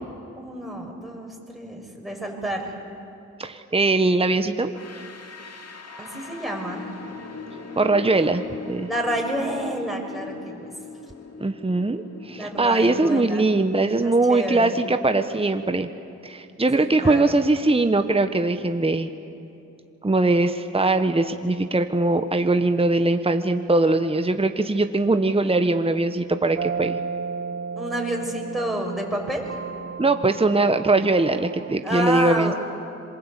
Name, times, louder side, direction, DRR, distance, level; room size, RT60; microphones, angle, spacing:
voice 1, 0.4-2.8 6.0-6.9 8.9-10.7 12.4-13.5 13.9-14.8 16.7-17.4 27.8-29.4 31.8-32.6, right 1 dB, ahead, 0 dB, 6.6 m, -29 dB
voice 2, 3.4-4.7 7.8-8.9 11.4-15.9 16.2-19.1 20.0-27.0 30.0-32.5, right 2 dB, 20° right, 8 dB, 1.2 m, -21 dB
sound 1, 4.7-15.6, left 4 dB, 55° left, 2.4 m, -41 dB
sound 2, 26.6-31.8, right 5 dB, 40° right, 0.8 m, -33 dB
26.5 x 22.5 x 8.4 m, 2.8 s
cardioid pair, 50°, 31 cm